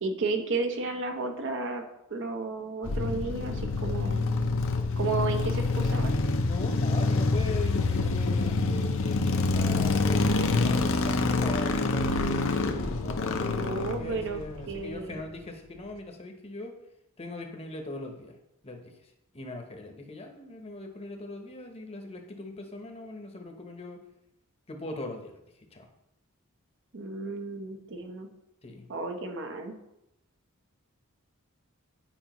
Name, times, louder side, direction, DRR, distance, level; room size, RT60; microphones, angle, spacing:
voice 1, 0.0-1.8 2.1-4.3 5.0-6.2 13.4-14.4 14.7-15.2 26.9-28.3 28.9-29.7, right 3 dB, 60° right, 4 dB, 0.8 m, -33 dB
sound 1, 2.8-15.1, left 3 dB, 65° left, 0.6 m, -27 dB
voice 2, 6.4-16.8 17.2-18.4 18.6-24.0 24.7-25.9 28.6-28.8, left 2 dB, 30° left, 4 dB, 0.9 m, -40 dB
8.9 x 4.8 x 3.0 m, 0.83 s
head